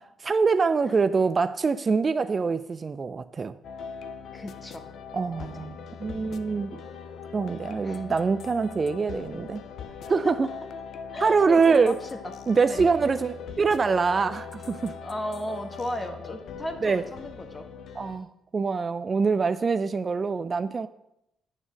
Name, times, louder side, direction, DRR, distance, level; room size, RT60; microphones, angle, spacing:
voice 1, 0.2-3.5 5.1-6.8 7.3-9.6 10.1-10.5 11.2-12.0 12.5-15.0 16.8-17.0 18.0-18.3 18.5-20.9, right 4 dB, 35° right, 11 dB, 0.3 m, -24 dB
sound 1, 3.6-18.2, left 6 dB, 70° left, 0.5 m, -41 dB
voice 2, 4.3-4.8 5.4-5.7 7.8-8.2 10.0-10.3 11.1-12.0 12.2-12.3 12.6-12.9 15.0-17.7, left 1 dB, 25° left, 5 dB, 1.2 m, -35 dB
9.1 x 3.8 x 6.2 m, 0.82 s
cardioid pair, 90°, 0 cm